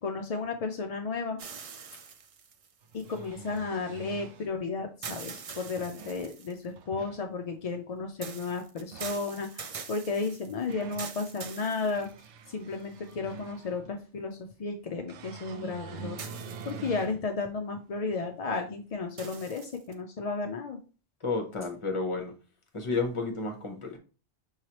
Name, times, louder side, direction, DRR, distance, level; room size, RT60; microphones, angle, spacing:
voice 1, 0.0-1.4 2.9-12.1 12.5-16.2 16.6-20.8, left 4 dB, 55° left, 0.4 m, -33 dB
sound 1, 1.4-3.6 5.0-6.7 8.2-12.5 13.1-13.2 16.2-17.0 19.2-19.9, right 6 dB, 65° right, 0.3 m, -44 dB
sound 2, 1.9-2.0 2.8-4.5 5.5-6.3 6.7-7.2 8.8-9.2 10.2-11.1 11.7-13.9 15.1-17.2 17.7-17.8 19.3-19.4, right 5 dB, 80° right, 0.9 m, -45 dB
voice 2, 21.2-22.3 22.7-24.0, left 3 dB, 30° left, 0.8 m, -31 dB
5.5 x 3.1 x 2.9 m
omnidirectional pair, 1.2 m